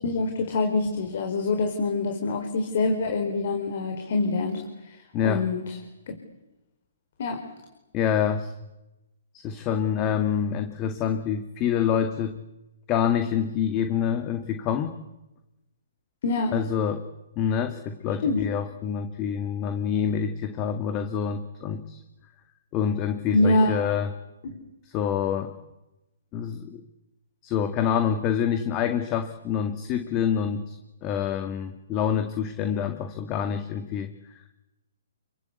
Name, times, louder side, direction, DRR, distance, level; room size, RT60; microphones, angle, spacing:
voice 1, 0.0-5.7 7.2-7.4 16.2-16.5 18.2-18.4 23.3-23.7, left 2 dB, 55° left, 5 dB, 4.9 m, -25 dB
voice 2, 5.1-5.5 7.9-8.7 9.3-12.4 12.9-15.0 16.5-17.1 17.4-22.0 22.7-24.1 24.8-25.5 26.3-26.8 27.4-34.4, left 8 dB, 25° left, 8 dB, 2.1 m, -27 dB
30.0 x 23.5 x 8.5 m, 0.97 s
hypercardioid pair, 145°, 0 cm